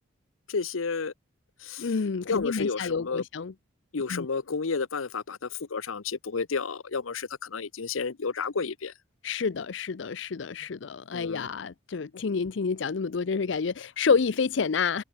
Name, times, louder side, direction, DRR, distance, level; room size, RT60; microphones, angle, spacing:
voice 1, 0.5-1.1 1.6-1.9 2.3-3.2 3.9-8.9 11.1-11.5, left 5 dB, 90° left, 0.8 m, -31 dB
voice 2, 1.8-3.5 4.1-4.3 9.2-15.0, left 5 dB, 65° left, 0.5 m, -28 dB
head